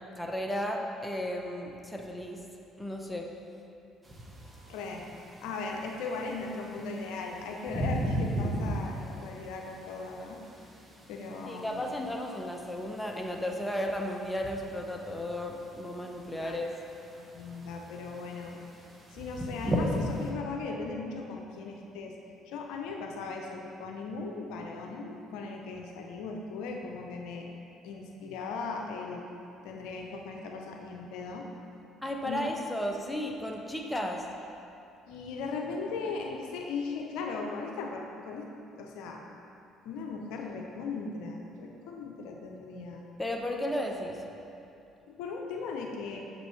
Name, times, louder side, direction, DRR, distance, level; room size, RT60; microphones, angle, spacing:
voice 1, 0.1-2.4 2.8-3.3 11.4-16.7 32.0-34.3 43.2-44.2, left 1 dB, 10° left, 1 dB, 0.8 m, -34 dB
sound 1, 4.0-20.3, equal, 20° right, 1.0 m, -38 dB
voice 2, 4.7-5.0 5.4-10.7 11.1-11.9 16.4-16.7 17.1-18.6 19.1-22.1 22.5-27.5 27.8-29.2 29.6-31.5 32.2-32.5 35.1-38.5 38.8-39.2 39.8-43.0 45.1-46.2, left 4 dB, 75° left, 1 dB, 0.5 m, -38 dB
6.8 x 5.1 x 3.2 m, 2.7 s
hypercardioid pair, 60°, 0 cm